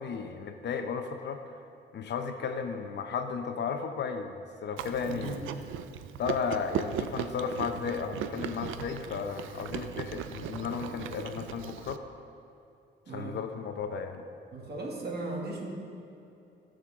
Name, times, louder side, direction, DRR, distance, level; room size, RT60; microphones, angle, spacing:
voice 1, 0.0-1.5 1.9-5.4 6.2-12.0 13.1-14.2, left 6 dB, 60° left, 6 dB, 0.9 m, -34 dB
Chewing mastication, 4.8-12.0, right 9 dB, 85° right, 0.5 m, -38 dB
voice 2, 5.1-5.5 13.1-13.4 14.5-15.7, right 2 dB, 55° right, -1 dB, 2.5 m, -37 dB
17.0 x 6.6 x 3.8 m, 2.7 s
cardioid pair, 90°, 20 cm